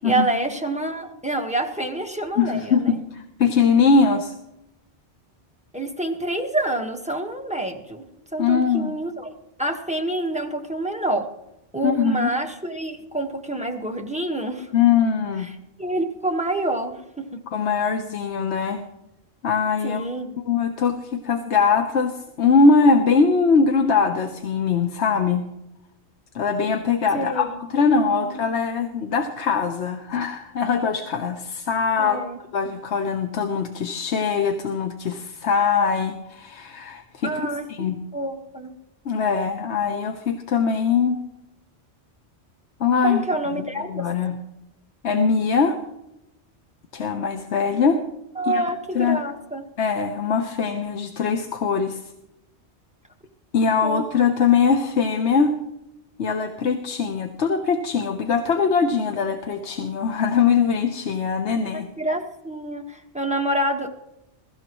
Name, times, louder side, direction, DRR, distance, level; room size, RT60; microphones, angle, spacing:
voice 1, 0.0-3.0 5.7-8.0 8.3-9.3 9.6-11.3 11.7-14.7 15.8-17.4 19.8-20.3 27.1-27.6 27.9-28.4 32.0-32.4 37.2-38.7 43.0-44.1 48.3-49.6 53.8-54.0 61.7-63.9, right 1 dB, 5° right, 4 dB, 1.3 m, -27 dB
voice 2, 2.4-4.3 8.4-8.9 11.8-12.3 14.7-15.5 17.5-18.8 19.4-20.1 20.4-25.4 26.3-32.2 32.5-37.3 37.7-38.0 39.0-41.2 42.8-43.2 43.9-44.3 45.0-45.8 46.9-48.0 48.4-48.6 48.9-49.2 49.8-52.0 53.5-55.5 56.2-61.9, left 5 dB, 75° left, 6 dB, 1.2 m, -21 dB
22.0 x 13.5 x 3.1 m, 0.88 s
omnidirectional pair, 1.2 m